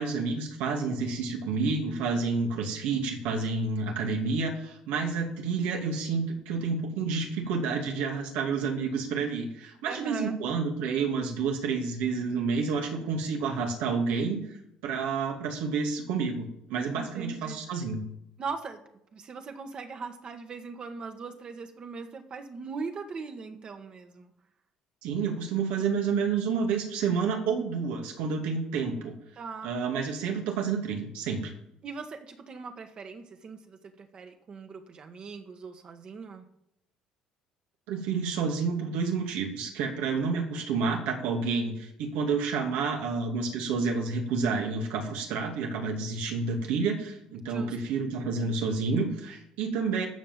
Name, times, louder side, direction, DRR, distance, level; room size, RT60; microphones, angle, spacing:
voice 1, 0.0-14.4 14.8-18.0 25.0-29.1 29.6-31.5 37.9-50.1, right 4 dB, 85° right, 3 dB, 2.4 m, -29 dB
voice 2, 9.9-10.3 16.9-17.6 18.4-18.8 19.1-24.3 29.4-29.7 31.8-36.4 47.5-47.8, right 5 dB, 40° right, 6 dB, 1.6 m, -40 dB
14.0 x 5.7 x 7.5 m, 0.81 s
cardioid pair, 105°, 2 cm